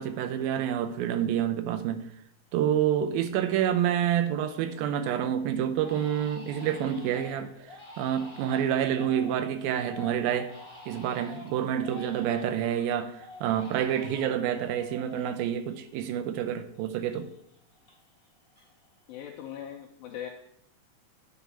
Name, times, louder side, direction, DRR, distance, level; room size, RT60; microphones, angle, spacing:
voice 1, 0.0-2.1 2.5-7.5 8.0-10.5 10.9-17.3, right 10 dB, 75° right, 2.4 m, -28 dB
Crying sobbing, 3.1-3.6 4.0-4.8 5.1-5.3 5.7-12.7 13.1-16.5 16.7-18.3 18.5-19.1, left 2 dB, 15° left, 3.2 m, -48 dB
voice 2, 19.1-20.3, left 10 dB, 75° left, 2.4 m, -40 dB
10.5 x 6.2 x 5.5 m
omnidirectional pair, 4.5 m